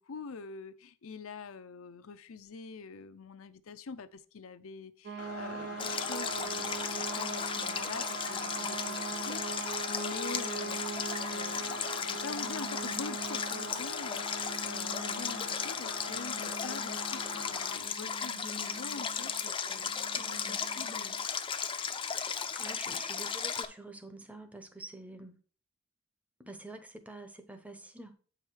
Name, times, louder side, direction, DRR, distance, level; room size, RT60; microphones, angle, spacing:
voice 1, 0.0-21.2 22.8-23.0, left 5 dB, 70° left, 0.6 m, -45 dB
sound 1, 5.0-21.3, right 6 dB, 50° right, 0.6 m, -43 dB
sound 2, 5.2-17.8, left 4 dB, 90° left, 1.3 m, -44 dB
Stream, 5.8-23.6, left 6 dB, 25° left, 0.5 m, -36 dB
voice 2, 20.2-20.6 22.6-25.4 26.4-28.1, right 2 dB, 5° right, 0.8 m, -47 dB
8.1 x 4.9 x 4.6 m
head